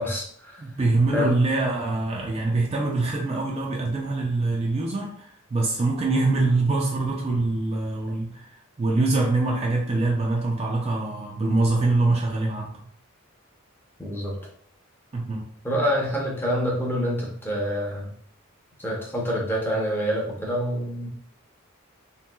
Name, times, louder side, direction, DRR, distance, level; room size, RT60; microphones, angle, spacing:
voice 1, 0.0-0.6 1.1-1.3 14.0-14.3 15.6-18.1 18.8-21.1, equal, 10° left, -3 dB, 0.6 m, -26 dB
voice 2, 0.6-8.5 8.8-12.7 15.1-15.4, right 2 dB, 30° right, -2 dB, 0.4 m, -24 dB
3.0 x 2.9 x 2.2 m, 0.63 s
head